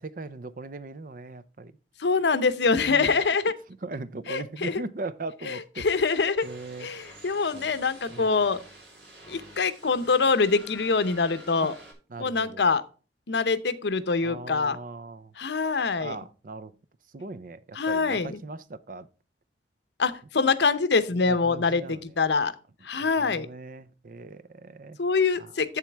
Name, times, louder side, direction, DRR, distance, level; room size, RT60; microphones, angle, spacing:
voice 1, 0.0-1.7 2.8-3.2 3.8-5.9 6.4-6.9 7.5-7.8 8.1-8.3 11.6-11.7 12.1-12.7 14.2-15.3 16.0-16.7 17.1-19.1 21.1-22.1 23.0-25.0 25.4-25.5, right 3 dB, 50° right, 0.6 m, -39 dB
voice 2, 2.0-3.6 4.3-4.8 5.4-6.5 6.8-8.6 9.3-11.7 12.2-12.8 13.3-14.8 15.4-16.2 17.7-18.4 20.0-22.5 22.8-23.5 25.0-25.8, left 4 dB, 75° left, 0.7 m, -24 dB
sound 1, 6.4-11.9, right 1 dB, 70° right, 4.3 m, -48 dB
8.3 x 7.4 x 3.4 m
head